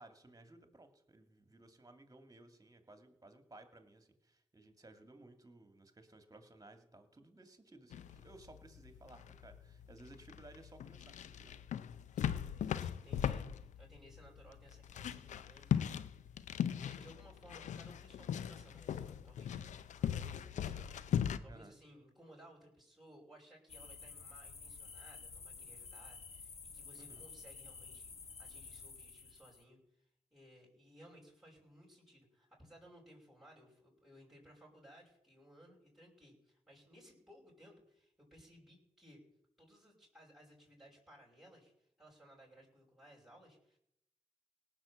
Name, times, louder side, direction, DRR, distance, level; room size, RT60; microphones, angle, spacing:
voice 1, 0.0-11.5 21.4-21.7 27.0-27.3, right 2 dB, 30° right, 7 dB, 2.4 m, -58 dB
sound 1, 7.9-21.4, left 9 dB, 90° left, 0.5 m, -39 dB
voice 2, 12.1-16.4 16.7-39.2 39.6-43.8, equal, ahead, -3 dB, 5.8 m, -61 dB
sound 2, 23.7-29.6, left 5 dB, 60° left, 1.2 m, -51 dB
18.0 x 6.1 x 7.2 m, 0.77 s
cardioid pair, 45°, 12 cm